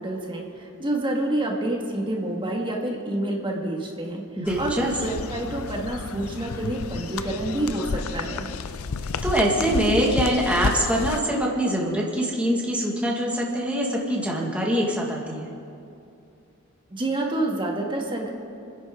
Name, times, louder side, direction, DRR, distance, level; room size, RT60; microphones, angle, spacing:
voice 1, 0.0-4.2 4.6-8.5 16.9-18.3, right 1 dB, 25° right, -1 dB, 1.9 m, -28 dB
voice 2, 4.4-4.9 9.2-15.5, right 1 dB, 5° right, -3 dB, 2.0 m, -24 dB
sound 1, 4.5-11.2, left 4 dB, 80° left, 0.6 m, -31 dB
29.5 x 10.5 x 3.8 m, 2.6 s
head